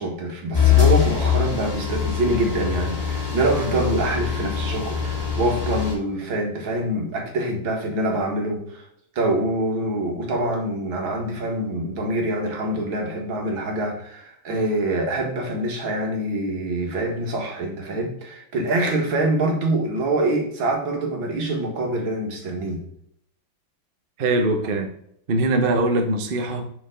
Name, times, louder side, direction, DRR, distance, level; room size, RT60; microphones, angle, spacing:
voice 1, 0.0-8.8 9.2-22.8, right 1 dB, 70° right, 1 dB, 2.4 m, -25 dB
Digging machine, 0.5-5.9, left 9 dB, 20° left, 2.0 m, -23 dB
voice 2, 24.2-24.9 25.3-26.6, right 2 dB, 45° right, 5 dB, 0.7 m, -22 dB
6.7 x 6.2 x 3.8 m, 0.69 s
omnidirectional pair, 2.2 m